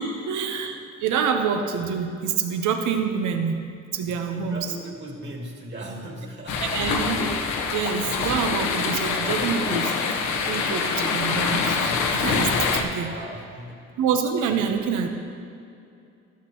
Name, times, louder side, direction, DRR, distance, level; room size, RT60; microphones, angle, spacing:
voice 1, 0.0-3.6 3.9-4.7 6.6-7.2 7.7-9.9 10.5-13.1 14.0-15.1, right 6 dB, 80° right, 5 dB, 1.0 m, -26 dB
voice 2, 4.0-7.1 13.0-13.9, right 1 dB, 35° right, -1 dB, 2.6 m, -38 dB
sound 1, 6.5-12.8, left 5 dB, 85° left, 1.1 m, -25 dB
14.5 x 12.5 x 3.0 m, 2.5 s
cardioid pair, 90°, 30 cm